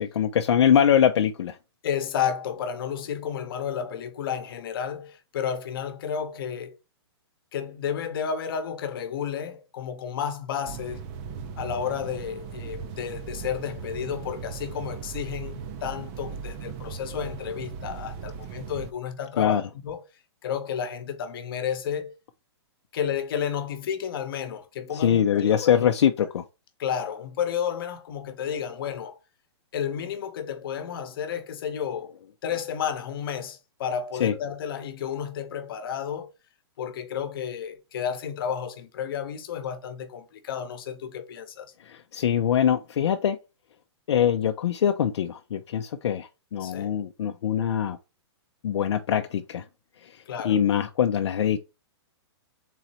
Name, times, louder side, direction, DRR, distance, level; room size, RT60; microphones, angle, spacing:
voice 1, 0.0-1.6 19.4-19.6 24.9-26.4 34.2-34.3 41.8-43.4 44.1-48.0 48.6-49.7 50.0-51.6, left 9 dB, 75° left, 0.5 m, -23 dB
voice 2, 1.8-6.8 7.5-11.0 11.6-20.0 20.4-22.1 22.9-25.7 26.8-29.2 29.7-32.1 32.4-36.3 36.8-41.7 46.6-46.9 50.3-50.6, left 8 dB, 55° left, 0.9 m, -31 dB
sound 1, 10.7-18.9, right 6 dB, 25° right, 0.5 m, -38 dB
3.8 x 3.0 x 4.2 m
hypercardioid pair, 160°, 14 cm